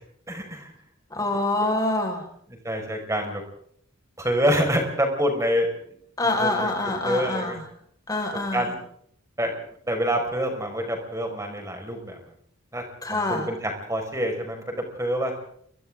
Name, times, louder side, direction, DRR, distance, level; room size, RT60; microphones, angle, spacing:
voice 1, 0.3-0.7 1.3-1.4 2.6-3.4 4.2-5.7 6.2-7.6 8.5-8.7 9.4-9.5 9.9-12.2 12.7-12.8 13.1-14.6 15.0-15.3, equal, 15° right, 3 dB, 5.3 m, -26 dB
voice 2, 1.1-2.2 6.2-7.6 8.1-8.7 13.0-13.5, left 2 dB, 20° left, 2 dB, 5.0 m, -25 dB
29.5 x 24.0 x 3.8 m, 0.64 s
head